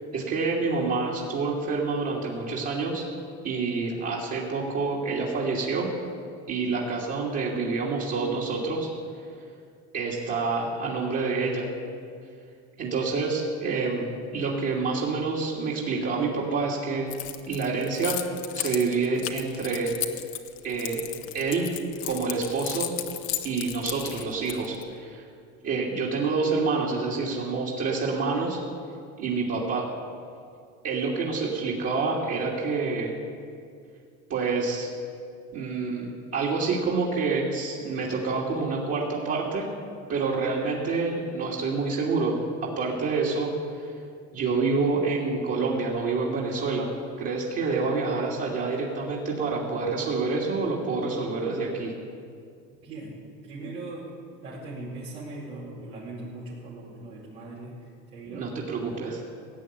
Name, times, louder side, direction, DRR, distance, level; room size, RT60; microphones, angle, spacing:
voice 1, 0.1-3.0 3.4-5.9 6.5-8.9 9.9-11.7 12.8-17.1 17.5-18.2 18.5-19.9 20.6-21.1 21.3-21.7 22.0-22.9 23.4-25.2 25.6-28.6 29.2-29.9 30.8-33.2 34.3-34.9 35.5-39.7 40.1-42.4 42.6-43.9 44.3-46.9 47.2-51.9 58.3-59.2, right 4 dB, 55° right, -6 dB, 3.1 m, -27 dB
Keys jangling, 17.1-24.8, left 13 dB, 75° left, 1.2 m, -34 dB
voice 2, 52.8-54.1 54.4-57.8 58.1-58.5, right 2 dB, 90° right, -8 dB, 4.5 m, -39 dB
17.0 x 8.8 x 8.4 m, 2.3 s
supercardioid pair, 100°, 30 cm